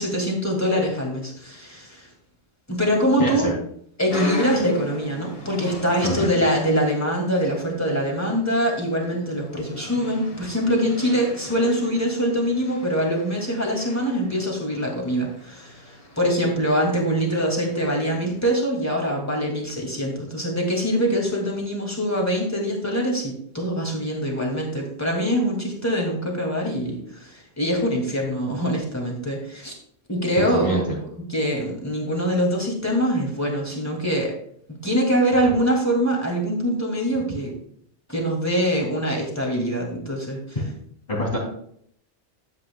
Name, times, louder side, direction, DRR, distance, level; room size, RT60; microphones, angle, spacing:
voice 1, 0.0-2.1 2.7-3.5 4.0-29.7 30.1-30.8 31.3-34.3 34.8-37.5 38.1-40.4, equal, 15° left, -1 dB, 2.5 m, -24 dB
voice 2, 3.2-3.5 6.0-6.3 30.5-31.0 40.6-40.8 41.1-41.4, right 1 dB, 40° left, -3 dB, 3.4 m, -25 dB
sound 1, 4.1-18.5, left 1 dB, 55° left, 2.2 m, -39 dB
12.5 x 8.3 x 2.3 m, 0.64 s
omnidirectional pair, 1.2 m